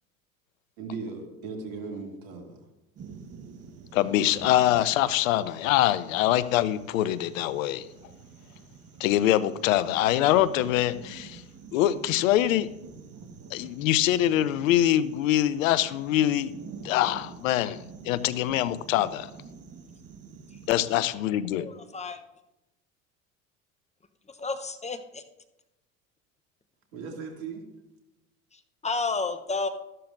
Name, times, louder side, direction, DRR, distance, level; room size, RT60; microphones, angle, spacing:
voice 1, 0.8-2.7 26.9-27.7, right 4 dB, 65° right, 2 dB, 2.5 m, -37 dB
sound 1, 2.9-21.1, right 5 dB, 35° right, 1.4 m, -47 dB
voice 2, 3.9-7.9 9.0-11.4 11.7-12.7 13.5-16.5 16.8-19.3 20.7-21.7, left 13 dB, 75° left, 16 dB, 0.7 m, -24 dB
voice 3, 21.5-22.2 24.3-25.2 28.5-29.7, left 3 dB, 15° left, 9 dB, 0.8 m, -32 dB
13.0 x 12.0 x 2.6 m, 0.96 s
hypercardioid pair, 75°, 40 cm